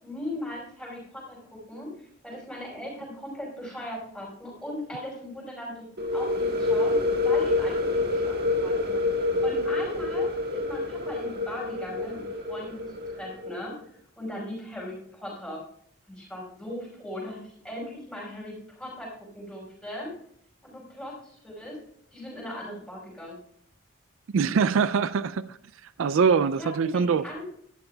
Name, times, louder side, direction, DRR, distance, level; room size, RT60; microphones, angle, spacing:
voice 1, 0.0-5.9 6.1-7.0 7.2-15.6 16.1-20.1 20.6-21.8 22.1-23.4 26.6-27.6, left 1 dB, 5° left, 5.2 m, -39 dB
sound 1, 6.0-13.6, left 2 dB, 50° right, 1.4 m, -27 dB
voice 2, 24.3-25.6 26.0-27.2, right 6 dB, 70° right, 0.4 m, -23 dB
17.5 x 12.5 x 2.3 m
head